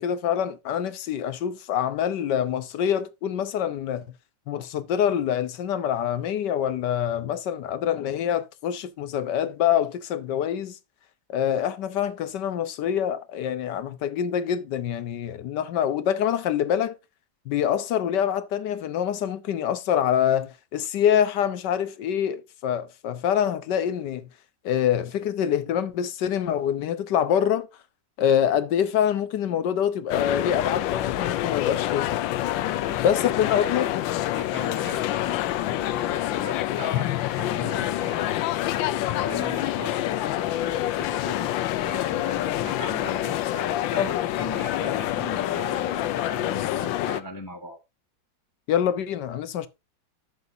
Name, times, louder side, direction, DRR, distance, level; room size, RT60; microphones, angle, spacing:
voice 1, 0.0-4.0 4.5-10.8 11.3-16.9 17.5-24.3 24.6-27.7 28.2-32.2 33.0-33.9 44.0-44.1 44.8-44.9 48.7-49.7, left 9 dB, 70° left, 1.4 m, -25 dB
sound 1, 30.1-47.2, left 13 dB, 90° left, 1.3 m, -27 dB
voice 2, 32.7-33.9 34.3-38.4 39.1-41.5 41.8-47.8, left 1 dB, 20° left, 0.6 m, -39 dB
12.0 x 6.7 x 2.7 m
omnidirectional pair, 2.0 m